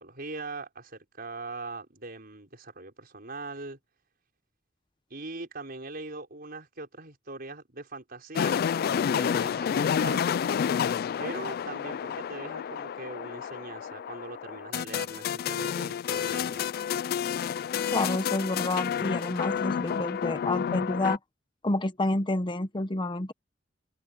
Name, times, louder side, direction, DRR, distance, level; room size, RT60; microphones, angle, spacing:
voice 1, 0.0-3.8 5.1-8.6 9.1-10.3 11.2-16.7, right 3 dB, 55° right, 5.2 m, -41 dB
sound 1, 8.4-21.2, left 8 dB, 55° left, 0.3 m, -30 dB
voice 2, 17.9-21.2 21.6-23.3, left 2 dB, 25° left, 0.9 m, -29 dB
open air
head